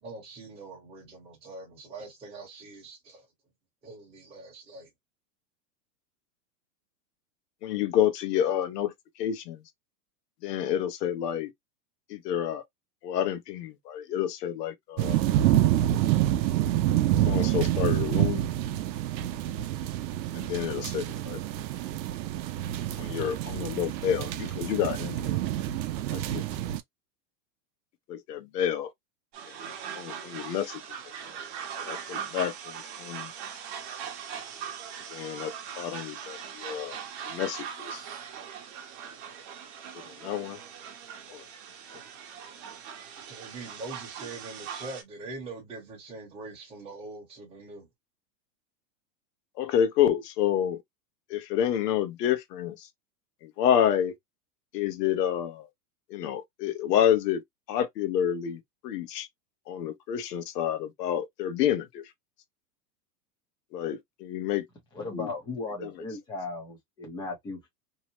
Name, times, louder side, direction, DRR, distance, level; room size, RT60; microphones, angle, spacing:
voice 1, 0.0-3.3 3.8-4.9 43.2-47.9, right 3 dB, 10° right, 0.9 m, -43 dB
voice 2, 7.6-8.9 9.2-9.6 10.4-11.5 12.1-12.6 13.0-15.2 17.3-18.4 20.3-21.4 23.0-25.4 26.1-26.4 28.1-28.9 29.7-30.7 31.8-32.5 33.0-33.3 35.1-35.5 35.8-37.0 37.3-38.0 40.2-40.6 41.3-41.4 49.6-50.8 51.3-52.7 53.6-54.1 54.7-55.7 56.1-57.4 57.7-58.6 58.8-59.3 59.7-62.0 63.7-64.6 65.1-65.3 65.8-65.9, left 10 dB, 70° left, 0.9 m, -28 dB
sound 1, 15.0-26.8, right 13 dB, 85° right, 0.6 m, -27 dB
sound 2, 29.3-45.0, right 8 dB, 45° right, 0.9 m, -40 dB
voice 3, 64.9-67.7, left 3 dB, 10° left, 0.6 m, -36 dB
2.8 x 2.0 x 2.8 m
supercardioid pair, 160°, 50 cm